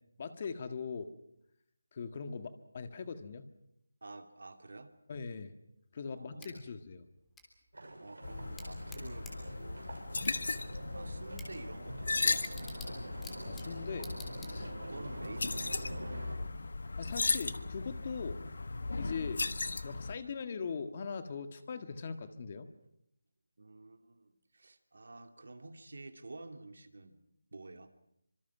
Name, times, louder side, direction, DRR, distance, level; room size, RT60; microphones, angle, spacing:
voice 1, 0.2-1.1 1.9-3.5 5.1-5.5 5.9-7.1 13.4-14.1 14.5-14.7 17.0-18.4 19.0-19.4 19.8-22.7, left 5 dB, 35° left, 9 dB, 1.6 m, -40 dB
voice 2, 4.0-4.9 6.1-6.6 8.0-9.9 10.9-13.1 14.9-15.7 23.6-27.2 27.5-27.9, right 2 dB, 70° right, 7 dB, 2.6 m, -50 dB
Bicycle / Tick, 6.4-15.0, left 2 dB, 5° left, 3.4 m, -54 dB
sound 1, 7.7-16.3, right 2 dB, 90° right, 6.3 m, -46 dB
sound 2, 8.2-20.2, left 3 dB, 65° left, 1.4 m, -37 dB
25.5 x 24.5 x 6.0 m, 0.76 s
figure-of-eight pair, 170°, 0 cm